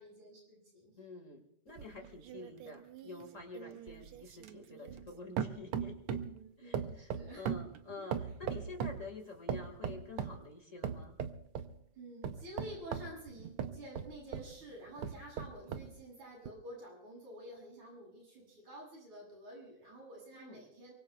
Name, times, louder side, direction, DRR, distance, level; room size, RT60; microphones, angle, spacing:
voice 1, 0.0-1.0 6.2-7.5 8.0-8.1 11.9-20.9, equal, 70° right, -3 dB, 9.5 m, -50 dB
voice 2, 1.0-6.0 6.6-11.2 15.6-15.8 20.3-20.7, left 3 dB, 30° left, 4 dB, 1.7 m, -49 dB
sound 1, 1.8-5.1 5.4-6.4 6.7-9.1 9.5-10.4 10.8-11.7 12.2-14.5 15.0-15.9 16.5-16.6, right 8 dB, 85° right, 1.2 m, -39 dB
24.5 x 24.0 x 2.3 m, 0.73 s
omnidirectional pair, 3.6 m